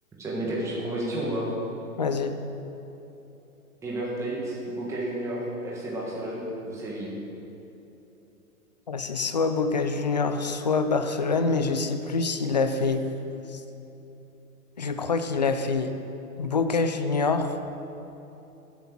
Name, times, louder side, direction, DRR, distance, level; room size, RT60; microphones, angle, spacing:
voice 1, 0.2-1.5 3.8-7.1, right 1 dB, 5° right, -5 dB, 1.5 m, -31 dB
voice 2, 2.0-2.3 8.9-13.0 13.5-13.6 14.8-15.9 16.4-17.6, left 4 dB, 30° left, 8 dB, 0.4 m, -25 dB
13.0 x 8.2 x 6.0 m, 3.0 s
hypercardioid pair, 155°, 45 cm